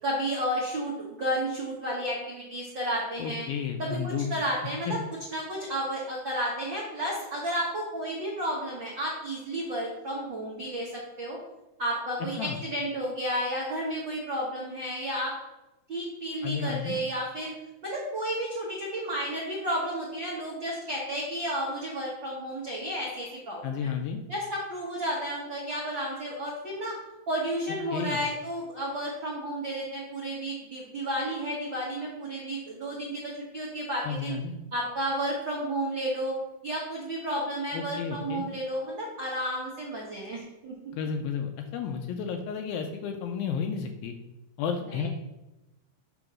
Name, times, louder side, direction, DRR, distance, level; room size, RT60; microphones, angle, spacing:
voice 1, 0.0-3.5 3.8-5.0 5.3-11.4 11.8-15.3 15.9-17.5 17.8-23.9 24.3-27.0 27.3-34.3 34.7-36.3 36.6-40.7 44.9-45.1, equal, 85° right, -5 dB, 1.0 m, -32 dB
voice 2, 3.2-4.3 4.9-5.0 12.4-12.6 16.4-17.0 23.6-24.2 27.9-28.2 34.1-34.5 37.7-38.5 40.9-44.2 44.6-45.1, left 6 dB, 80° left, 5 dB, 2.2 m, -32 dB
8.7 x 3.0 x 6.1 m, 0.97 s
omnidirectional pair, 4.6 m